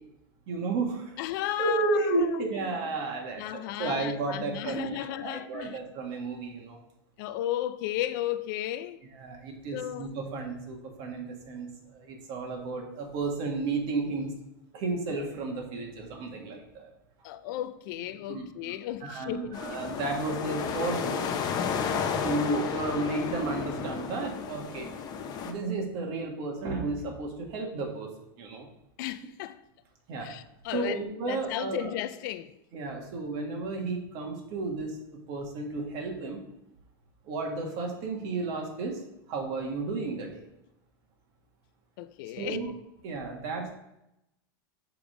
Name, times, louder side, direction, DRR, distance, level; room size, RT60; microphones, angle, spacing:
voice 1, 0.5-1.1 1.6-6.8 9.1-14.3 14.7-16.9 18.3-18.7 19.0-21.3 22.1-24.9 25.4-28.1 28.4-28.7 30.1-30.3 30.7-31.9 32.7-35.0 35.3-36.4 37.3-39.0 39.3-40.4 42.4-42.7 43.0-43.7, right 3 dB, 50° right, 1.7 m, -32 dB
voice 2, 1.2-2.3 3.4-5.8 7.2-9.0 9.7-10.1 17.2-19.6 29.0-29.6 30.2-31.0 31.3-32.5 42.0-42.7, left 13 dB, 60° left, 0.4 m, -34 dB
sound 1, 19.5-25.5, left 6 dB, 35° left, 0.7 m, -32 dB
6.9 x 3.5 x 4.9 m
supercardioid pair, 140°, 12 cm